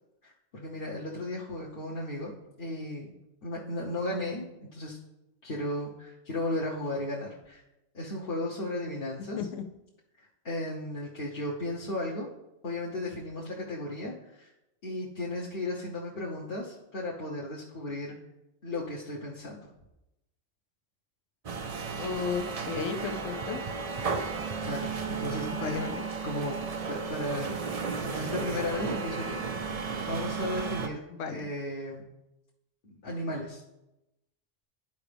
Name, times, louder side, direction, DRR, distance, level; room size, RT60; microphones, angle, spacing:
voice 1, 0.2-2.3 2.6-3.1 3.4-5.0 5.4-7.6 7.9-9.4 10.4-12.3 12.6-14.5 14.8-18.2 18.6-19.7 24.6-25.8 26.2-27.6 27.9-29.4 30.0-31.0 31.3-32.1 32.8-33.6, left 1 dB, 50° left, -4 dB, 1.1 m, -35 dB
sound 1, 21.4-30.9, right 5 dB, 45° right, 0.5 m, -34 dB
voice 2, 22.0-23.6 25.5-26.1 31.1-31.4, left 6 dB, 85° left, 7 dB, 1.0 m, -34 dB
12.0 x 4.8 x 3.4 m, 0.92 s
omnidirectional pair, 1.3 m